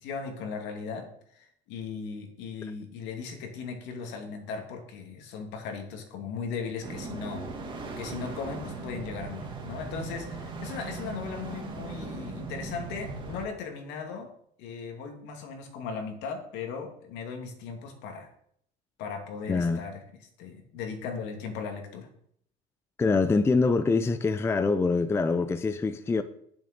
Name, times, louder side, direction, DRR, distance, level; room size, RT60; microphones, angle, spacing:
voice 1, 0.0-7.5 8.0-14.3 14.6-18.3 19.0-20.0 20.4-22.1, left 5 dB, 65° left, 2.5 m, -37 dB
sound 1, 6.8-13.5, right 3 dB, 25° right, 1.8 m, -38 dB
voice 2, 19.5-19.8 23.0-26.2, left 4 dB, 15° left, 0.5 m, -24 dB
9.0 x 7.2 x 6.6 m
cardioid pair, 145°, 19 cm